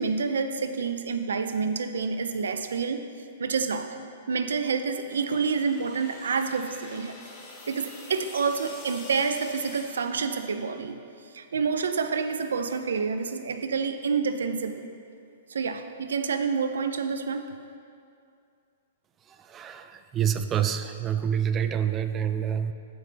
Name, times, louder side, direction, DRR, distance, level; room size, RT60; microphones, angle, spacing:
voice 1, 0.0-3.0 3.4-4.0 4.3-7.2 7.7-11.0 11.3-14.9 15.5-17.5, right 5 dB, 90° right, 9 dB, 0.5 m, -28 dB
sound 1, 4.9-10.8, left 2 dB, 25° left, 1.5 m, -46 dB
voice 2, 19.3-22.7, right 9 dB, 20° right, 9 dB, 0.5 m, -27 dB
15.0 x 5.4 x 3.3 m, 2.4 s
hypercardioid pair, 140°, 0 cm